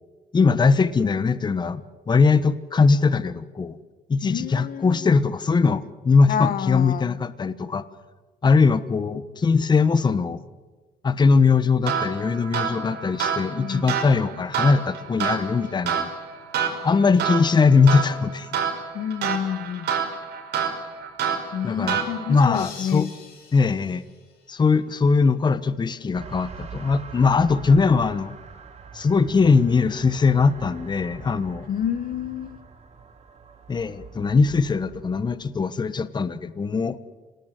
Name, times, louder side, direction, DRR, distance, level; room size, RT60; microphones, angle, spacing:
voice 1, 0.3-1.8 2.1-3.8 4.1-7.8 8.4-10.4 11.0-16.1 16.8-18.5 21.6-22.0 22.3-23.1 23.5-24.0 24.5-28.3 28.9-31.7 33.7-37.0, left 4 dB, 25° left, 13 dB, 1.2 m, -20 dB
voice 2, 4.2-5.2 6.3-7.2 13.5-13.9 18.9-19.9 21.5-23.1 31.7-32.6, left 9 dB, 55° left, 13 dB, 1.2 m, -29 dB
sound 1, 11.8-22.5, right 7 dB, 75° right, 5.5 m, -28 dB
sound 2, 22.5-24.9, left 6 dB, 75° left, 6.7 m, -45 dB
sound 3, 26.1-35.5, right 5 dB, 40° right, 3.4 m, -42 dB
26.5 x 18.5 x 9.3 m, 1.3 s
cardioid pair, 110°, 17 cm